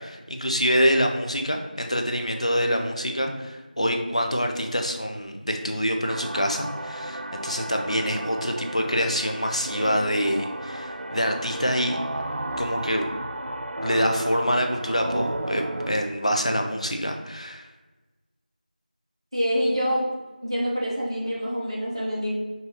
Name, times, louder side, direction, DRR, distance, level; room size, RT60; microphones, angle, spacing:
voice 1, 0.0-12.0 12.6-13.0 13.8-17.7, equal, 45° left, 3 dB, 0.5 m, -26 dB
sound 1, 6.0-15.9, right 1 dB, 85° right, 0.4 m, -33 dB
voice 2, 19.3-20.1 20.4-22.3, equal, 30° right, -7 dB, 1.1 m, -26 dB
5.5 x 2.6 x 2.9 m, 1.2 s
figure-of-eight pair, 180°, 5 cm